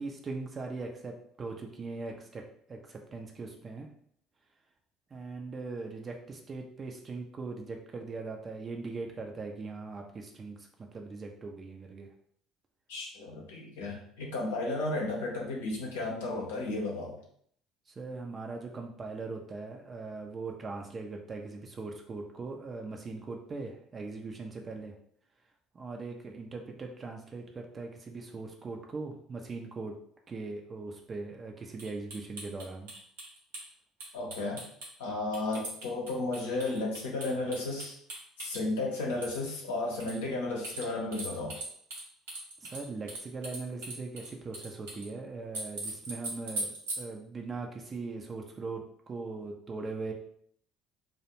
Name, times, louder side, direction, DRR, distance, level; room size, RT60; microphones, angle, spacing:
voice 1, 0.0-2.4 2.7-3.9 5.1-12.1 18.0-24.9 25.7-29.9 30.3-32.9 42.6-50.1, right 3 dB, 35° right, 2 dB, 0.4 m, -40 dB
voice 2, 12.9-17.2 34.1-34.6 35.0-37.9 38.4-41.6, left 2 dB, 75° left, -2 dB, 0.6 m, -33 dB
sound 1, 31.8-33.6 34.0-34.9 35.3-38.6 39.1-39.5 40.0-40.2 40.6-42.0 42.3-45.1 45.5-47.0, right 2 dB, 75° right, 0.8 m, -39 dB
2.4 x 2.1 x 2.8 m, 0.64 s
figure-of-eight pair, 60°, 0 cm